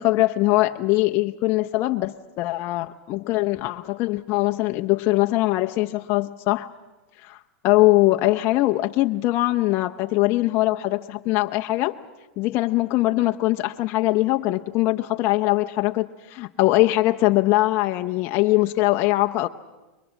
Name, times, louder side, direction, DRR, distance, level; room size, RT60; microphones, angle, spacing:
voice 1, 0.0-6.7 7.2-7.4 7.6-12.0 12.4-19.5, left 18 dB, 45° left, 5 dB, 0.8 m, -22 dB
28.5 x 22.5 x 7.2 m, 1.1 s
hypercardioid pair, 115°, 6 cm